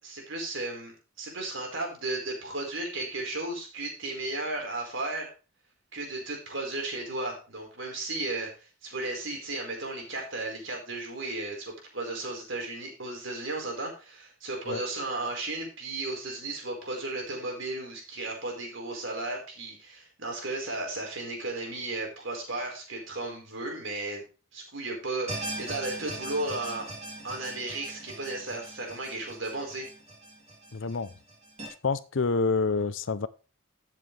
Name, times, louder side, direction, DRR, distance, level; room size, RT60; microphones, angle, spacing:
voice 1, 0.0-5.3 5.9-24.2 24.5-26.9 27.2-29.9, right 2 dB, 65° right, 4.7 m, -35 dB
sound 1, 25.3-31.7, right 2 dB, 30° right, 3.5 m, -40 dB
voice 2, 30.7-31.1 31.8-33.3, left 4 dB, 65° left, 0.7 m, -27 dB
13.5 x 7.6 x 3.4 m
head